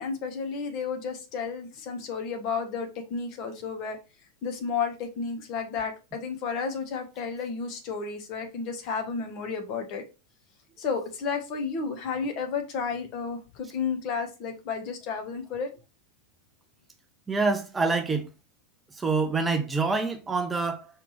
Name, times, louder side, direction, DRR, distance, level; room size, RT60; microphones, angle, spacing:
voice 1, 0.0-4.0 4.4-10.0 10.8-15.7, left 5 dB, 40° left, 1.1 m, -32 dB
voice 2, 17.3-18.3 18.9-20.9, right 4 dB, 10° right, 0.5 m, -26 dB
4.9 x 3.3 x 3.2 m
figure-of-eight pair, 90°, 0 cm